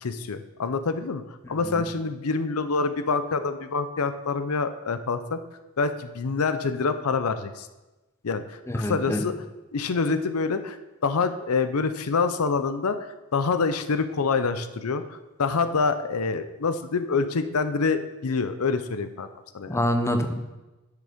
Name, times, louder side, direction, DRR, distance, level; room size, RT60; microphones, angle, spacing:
voice 1, 0.0-5.4 5.8-7.7 8.2-9.3 9.7-10.8 11.0-13.0 13.3-19.3 19.5-19.8, left 4 dB, 70° left, 10 dB, 0.6 m, -26 dB
voice 2, 8.7-9.2 19.7-20.3, equal, 10° left, 6 dB, 0.8 m, -25 dB
10.5 x 6.7 x 5.1 m, 1.1 s
head